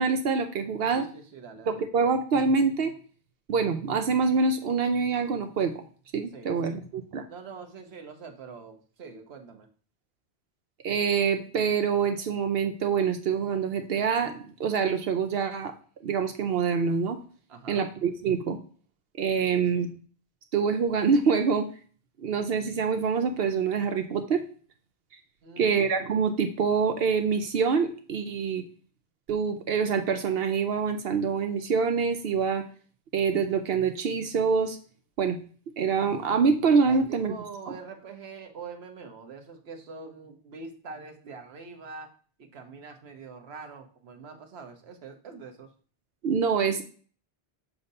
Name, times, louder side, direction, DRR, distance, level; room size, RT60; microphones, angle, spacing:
voice 1, 0.0-1.0 1.7-2.9 3.5-5.8 6.1-7.2 10.8-15.7 16.0-17.2 17.7-18.6 19.2-19.9 20.5-21.7 22.2-24.4 25.6-28.6 29.3-32.6 33.1-34.8 35.2-35.4 35.8-37.3 37.7-37.8 46.2-46.8, right 5 dB, 70° right, 7 dB, 0.8 m, -25 dB
voice 2, 1.0-1.8 6.3-6.8 7.3-9.7 17.5-17.9 19.5-19.9 25.4-25.8 36.9-45.7, right 4 dB, 90° right, 5 dB, 1.2 m, -44 dB
7.1 x 2.7 x 5.3 m, 0.42 s
omnidirectional pair, 1.0 m